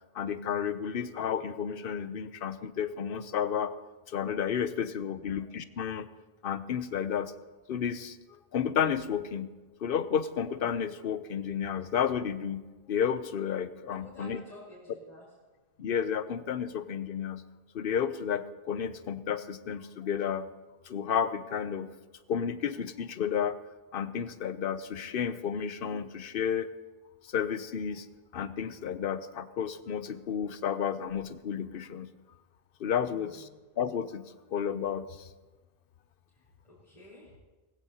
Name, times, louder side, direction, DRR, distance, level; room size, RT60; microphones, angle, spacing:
voice 1, 0.1-3.7 4.1-6.1 6.4-7.3 7.7-9.5 9.8-14.4 15.8-17.4 17.7-20.5 20.9-21.9 22.3-23.6 23.9-26.7 27.3-28.1 28.3-32.1 32.8-33.5 33.8-34.2 34.5-35.3, left 8 dB, 65° left, 13 dB, 0.8 m, -32 dB
voice 2, 13.9-15.2 33.0-33.6 36.3-37.4, left 1 dB, 35° left, -8 dB, 3.6 m, -52 dB
19.0 x 15.5 x 2.8 m, 1.2 s
omnidirectional pair, 1.1 m